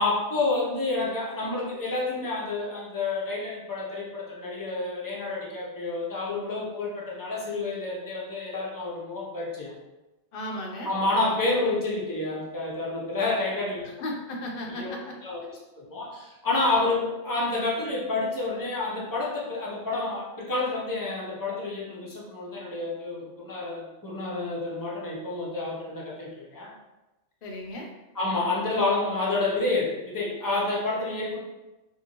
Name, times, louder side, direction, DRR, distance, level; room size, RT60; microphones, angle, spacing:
voice 1, 0.0-9.7 10.8-14.0 14.7-26.7 28.1-31.4, left 2 dB, 25° left, -5 dB, 0.5 m, -29 dB
voice 2, 10.3-10.9 14.0-15.1 27.4-27.9, left 1 dB, 60° left, 0 dB, 0.7 m, -35 dB
2.7 x 2.6 x 2.9 m, 1.0 s
omnidirectional pair, 1.2 m